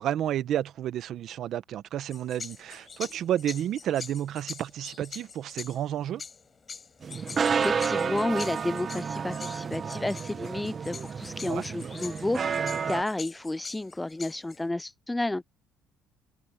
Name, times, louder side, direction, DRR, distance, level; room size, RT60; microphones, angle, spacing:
voice 1, 0.0-6.2 11.4-11.6, right 11 dB, 55° right, 1.1 m, -31 dB
sound 1, 2.1-14.7, left 5 dB, 25° left, 7.6 m, -44 dB
sound 2, 7.0-13.0, right 6 dB, 35° right, 1.1 m, -31 dB
voice 2, 7.6-15.4, left 2 dB, 10° left, 0.6 m, -31 dB
open air
cardioid pair, 120°, 0 cm